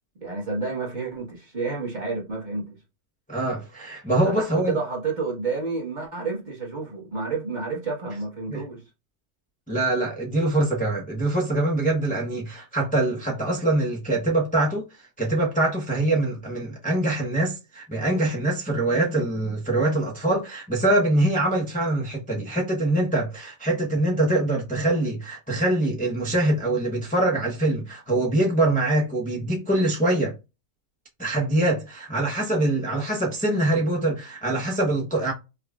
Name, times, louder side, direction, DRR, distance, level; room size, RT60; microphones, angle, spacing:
voice 1, 0.2-2.7 4.2-8.8, right 4 dB, 30° right, 1.3 m, -30 dB
voice 2, 3.3-4.8 8.5-8.6 9.7-30.3 31.2-35.3, right 2 dB, 10° left, 0.5 m, -24 dB
5.4 x 2.4 x 2.3 m
omnidirectional pair, 1.6 m